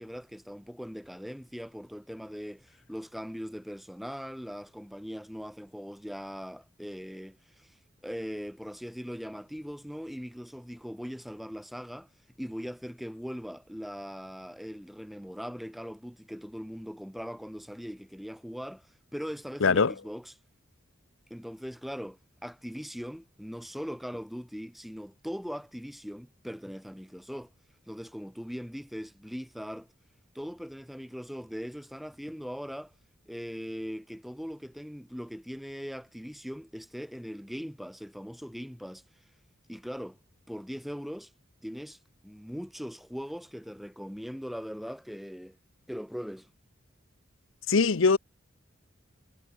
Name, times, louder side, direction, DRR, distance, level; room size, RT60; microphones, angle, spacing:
voice 1, 0.0-7.7 8.0-12.1 12.4-18.9 19.1-20.3 21.3-27.5 27.9-29.9 30.3-32.9 33.3-39.0 39.7-40.2 40.5-41.3 41.6-42.0 42.2-45.6 45.9-46.5, equal, ahead, 3.7 m, -40 dB
voice 2, 19.6-19.9 47.7-48.2, left 4 dB, 75° left, 0.8 m, -21 dB
head